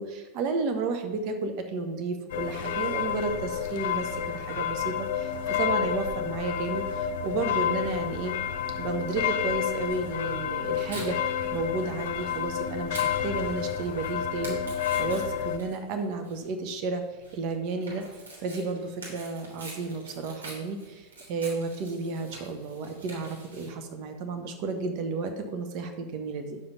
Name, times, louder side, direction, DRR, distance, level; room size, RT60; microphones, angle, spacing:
voice 1, 0.0-8.3 8.8-14.6 15.0-17.0 17.3-18.0 18.4-26.6, right 4 dB, 45° right, 7 dB, 1.3 m, -32 dB
sound 1, 2.3-15.6, left 9 dB, 55° left, 0.8 m, -30 dB
Tearing, 10.1-23.7, right 2 dB, 70° right, 3.1 m, -46 dB
9.3 x 7.1 x 4.0 m, 1.1 s
figure-of-eight pair, 90°, 0 cm